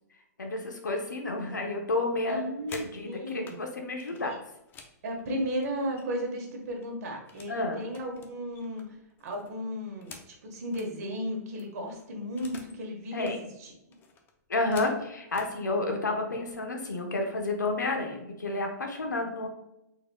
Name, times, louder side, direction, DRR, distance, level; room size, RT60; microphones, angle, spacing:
voice 1, 0.4-2.4 2.9-4.4 7.5-7.8 13.1-13.4 14.5-19.5, left 2 dB, 90° left, 3 dB, 1.0 m, -30 dB
voice 2, 2.3-3.6 4.2-4.4 5.0-13.3 13.6-13.7, equal, 60° right, 2 dB, 1.4 m, -35 dB
sound 1, 2.4-3.6 4.0-6.3 6.6-7.6 7.9-10.9 11.3-11.4 11.6-12.8 13.1-13.4 13.9-15.5 16.4-16.5 16.9-17.2 17.5-18.0, left 5 dB, 20° left, 0.6 m, -50 dB
4.6 x 4.1 x 2.3 m, 0.85 s
hypercardioid pair, 125°, 9 cm